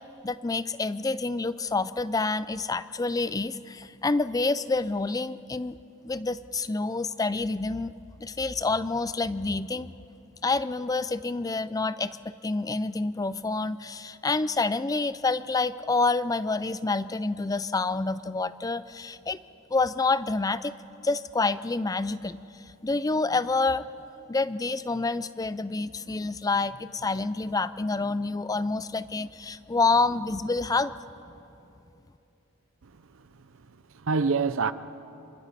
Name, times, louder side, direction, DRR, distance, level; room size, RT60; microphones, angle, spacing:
voice 1, 0.0-7.9 8.2-9.9 10.4-19.4 19.7-20.8 21.0-23.9 24.3-30.9, left 3 dB, 15° left, 0.4 m, -28 dB
voice 2, 32.8-33.3 33.7-34.7, right 4 dB, 60° right, 0.6 m, -28 dB
28.0 x 26.0 x 4.1 m
head